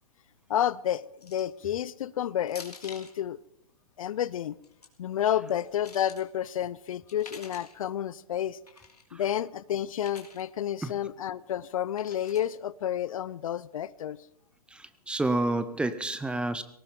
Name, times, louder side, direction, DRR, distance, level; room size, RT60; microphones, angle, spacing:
voice 1, 0.5-3.4 4.0-4.6 5.0-8.6 9.1-14.2, left 10 dB, 60° left, 20 dB, 0.6 m, -30 dB
sound 1, 1.2-1.6 2.5-3.2 4.5-4.9 5.5-6.2 7.1-7.8 8.7-9.0 10.0-10.4 12.0-12.6, left 4 dB, 90° left, 2.7 m, -48 dB
voice 2, 14.7-16.6, right 2 dB, 5° right, 13 dB, 0.7 m, -29 dB
18.5 x 18.0 x 3.8 m, 0.77 s
hypercardioid pair, 120°, 20 cm